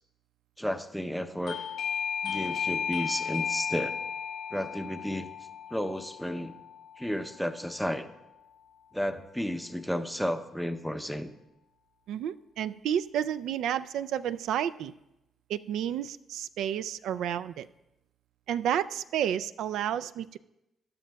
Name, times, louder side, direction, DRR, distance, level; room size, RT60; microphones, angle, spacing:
voice 1, 0.6-1.6 2.2-4.0 4.5-5.3 5.7-6.5 7.0-8.1 8.9-11.3, equal, ahead, 8 dB, 0.5 m, -32 dB
Doorbell, 1.5-7.9, left 7 dB, 60° left, 0.5 m, -35 dB
voice 2, 12.1-14.9 15.5-17.7 18.5-20.4, right 10 dB, 80° right, 13 dB, 0.3 m, -31 dB
20.5 x 11.5 x 2.3 m, 0.90 s
cardioid pair, 165°, 0 cm